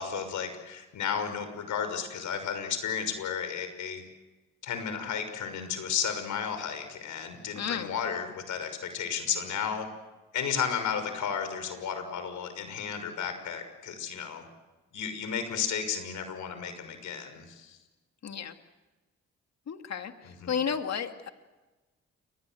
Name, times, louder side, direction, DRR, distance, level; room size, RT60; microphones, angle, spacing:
voice 1, 0.0-4.0 4.6-9.9 10.3-14.5 14.9-17.8 20.3-20.5, left 7 dB, 75° left, 8 dB, 6.2 m, -33 dB
voice 2, 7.6-7.9 18.2-18.5 19.7-21.3, left 7 dB, 60° left, 6 dB, 2.5 m, -33 dB
29.5 x 24.0 x 7.9 m, 1.2 s
supercardioid pair, 55°, 30 cm